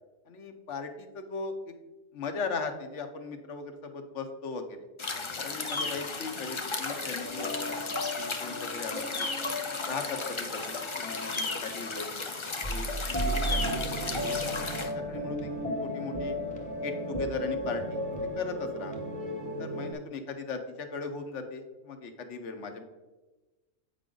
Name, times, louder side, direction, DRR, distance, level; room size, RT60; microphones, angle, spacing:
voice 1, 0.3-1.7 2.1-4.8 5.4-9.3 9.9-12.1 12.7-12.9 13.2-15.5 15.8-16.4 16.8-18.0 18.4-18.9 19.6-22.8, left 4 dB, 65° left, 6 dB, 1.1 m, -38 dB
sound 1, 5.0-14.9, left 3 dB, 40° left, 0.4 m, -35 dB
Horror Music, 7.2-19.9, equal, 5° left, 1.1 m, -35 dB
8.4 x 5.1 x 3.7 m, 1.2 s
omnidirectional pair, 1.4 m